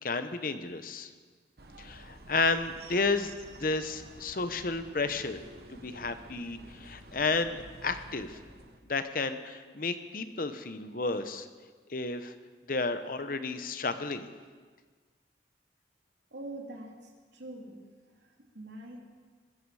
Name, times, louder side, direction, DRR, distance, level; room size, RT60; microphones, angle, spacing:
voice 1, 0.0-1.1 1.8-3.3 3.6-5.4 5.7-8.4 8.9-11.5 11.9-12.3 12.7-14.3, left 3 dB, 50° left, 10 dB, 0.9 m, -32 dB
sound 1, 1.6-8.8, right 1 dB, 55° right, 1.2 m, -50 dB
voice 2, 16.3-17.9 18.1-19.0, right 2 dB, 85° right, 1 dB, 2.7 m, -44 dB
20.0 x 13.5 x 4.9 m, 1.5 s
head